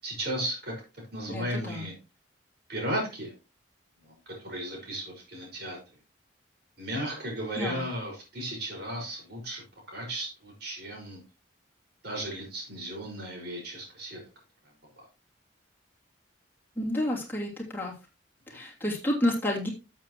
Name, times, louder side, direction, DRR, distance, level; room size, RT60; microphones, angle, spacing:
voice 1, 0.0-0.7 1.1-1.9 2.7-3.3 4.0-5.8 6.8-11.2 12.0-14.2 18.5-18.6, right 1 dB, 55° right, 0 dB, 5.4 m, -35 dB
voice 2, 1.3-1.9 7.6-7.8 16.8-17.9 18.5-19.7, left 1 dB, 10° left, -4 dB, 2.8 m, -30 dB
12.5 x 7.6 x 3.0 m, 0.29 s
head